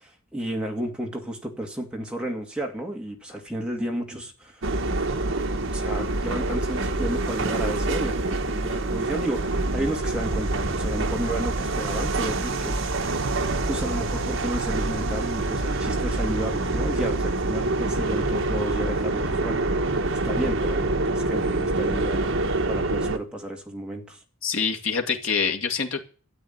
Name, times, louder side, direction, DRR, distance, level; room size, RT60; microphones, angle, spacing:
voice 1, 0.0-4.6 5.7-12.9 13.7-22.3 22.7-24.2, right 1 dB, 5° right, 1 dB, 2.4 m, -32 dB
sound 1, 4.6-23.2, right 2 dB, 65° right, 1.4 m, -26 dB
voice 2, 24.4-26.0, left 6 dB, 65° left, 4 dB, 2.2 m, -25 dB
13.0 x 8.0 x 9.4 m, 0.39 s
head